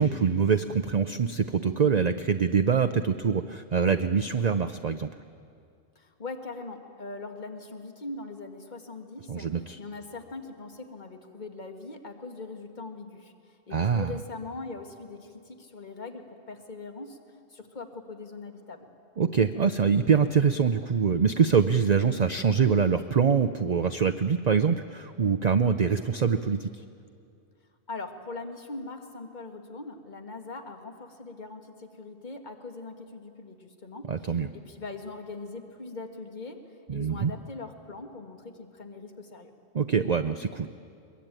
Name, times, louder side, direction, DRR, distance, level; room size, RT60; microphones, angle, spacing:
voice 1, 0.0-5.1 9.3-9.8 13.7-14.2 19.2-26.7 34.1-34.5 36.9-37.3 39.7-40.7, right 6 dB, 45° right, 8 dB, 0.6 m, -24 dB
voice 2, 6.0-17.2 17.5-18.9 27.9-36.6 36.9-39.5, left 3 dB, 40° left, 5 dB, 1.9 m, -41 dB
23.0 x 22.0 x 9.0 m, 2.4 s
omnidirectional pair, 1.2 m